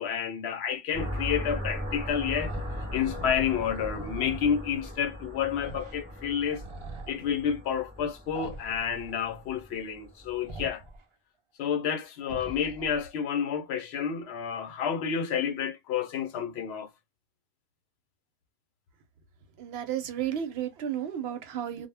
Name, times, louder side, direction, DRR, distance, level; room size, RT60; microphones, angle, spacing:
voice 1, 0.0-2.6 2.9-6.6 7.1-10.8 11.6-16.9, left 8 dB, 80° left, 0.8 m, -30 dB
sound 1, 0.9-10.5, equal, 5° right, 0.9 m, -38 dB
sound 2, 2.5-4.5 5.6-6.0 6.3-7.1 8.3-9.2 10.5-11.0 12.2-13.1, right 3 dB, 55° right, 0.3 m, -43 dB
voice 2, 19.6-21.9, right 10 dB, 80° right, 0.8 m, -33 dB
2.0 x 2.0 x 3.3 m
omnidirectional pair, 1.1 m